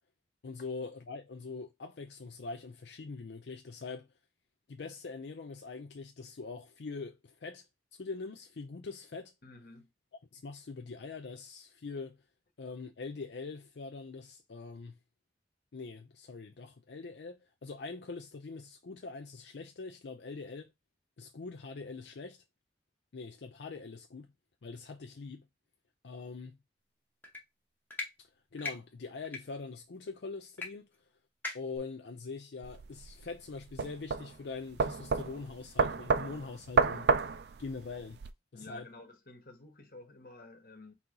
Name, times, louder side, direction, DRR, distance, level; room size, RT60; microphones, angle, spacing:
voice 1, 0.4-4.1 4.7-7.7 7.9-9.3 10.3-12.2 12.6-15.0 15.7-20.7 21.2-22.4 23.1-24.3 24.6-25.5 26.0-26.6 28.2-30.9 31.5-37.1 37.6-38.2 38.5-38.9, left 4 dB, 85° left, 0.5 m, -43 dB
voice 2, 9.4-9.9 38.5-40.9, left 3 dB, 55° left, 1.2 m, -51 dB
sound 1, 27.2-27.4 27.9-28.1 28.6-28.7 29.2-29.4 30.6-30.7 30.9-31.0 31.4-31.8, left 3 dB, 10° left, 0.8 m, -38 dB
sound 2, 32.6-38.3, right 4 dB, 70° right, 0.4 m, -30 dB
4.1 x 2.9 x 3.8 m
head